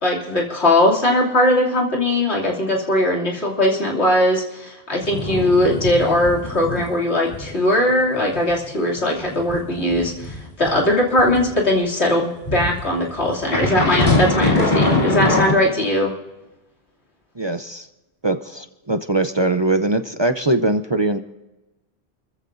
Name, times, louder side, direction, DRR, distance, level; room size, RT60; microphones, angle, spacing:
voice 1, 0.0-16.1, left 1 dB, 90° left, -2 dB, 3.2 m, -19 dB
sound 1, 5.0-6.9 7.3-7.5 7.9-11.5 12.4-15.5, left 2 dB, 50° left, 2.9 m, -22 dB
voice 2, 17.4-17.9 18.2-21.2, right 2 dB, 30° right, 8 dB, 0.6 m, -21 dB
29.0 x 14.5 x 2.7 m, 1.1 s
omnidirectional pair, 1.1 m